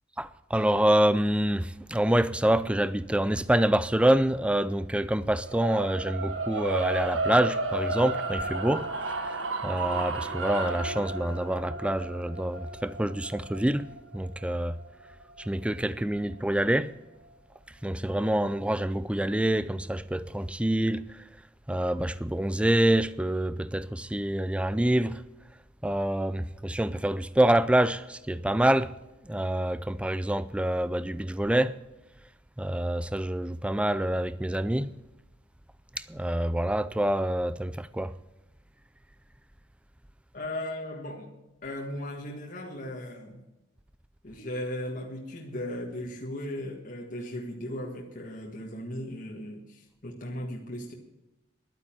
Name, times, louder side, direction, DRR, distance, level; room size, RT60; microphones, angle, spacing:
voice 1, 0.2-8.9 9.6-13.9 14.1-14.8 15.5-16.9 17.8-21.0 21.7-25.2 25.8-28.9 29.3-31.7 32.6-34.9 36.1-38.1, right 1 dB, 5° right, 0.4 m, -26 dB
sound 1, 5.4-15.6, right 2 dB, 90° right, 1.4 m, -33 dB
voice 2, 40.3-41.3 41.6-43.4 44.2-50.9, left 1 dB, 45° left, 1.6 m, -37 dB
11.5 x 9.1 x 8.8 m
head